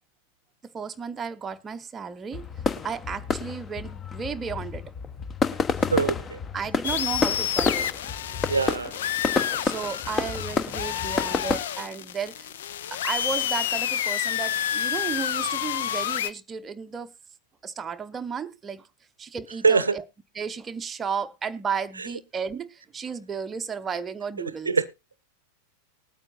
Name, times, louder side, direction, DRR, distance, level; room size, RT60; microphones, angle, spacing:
voice 1, 0.7-2.5 2.8-4.8 6.5-7.9 9.6-12.5 12.9-17.1 17.6-18.9 19.2-20.0 20.3-24.8, right 6 dB, 20° right, 0.8 m, -33 dB
sound 1, 2.3-11.6, left 4 dB, 20° left, 1.0 m, -29 dB
voice 2, 5.9-6.4 8.5-8.9 19.6-20.0 24.7-24.9, right 5 dB, 75° right, 0.7 m, -22 dB
sound 2, 6.8-16.3, left 10 dB, 60° left, 0.7 m, -29 dB
20.0 x 9.0 x 2.5 m
figure-of-eight pair, 90°, 0 cm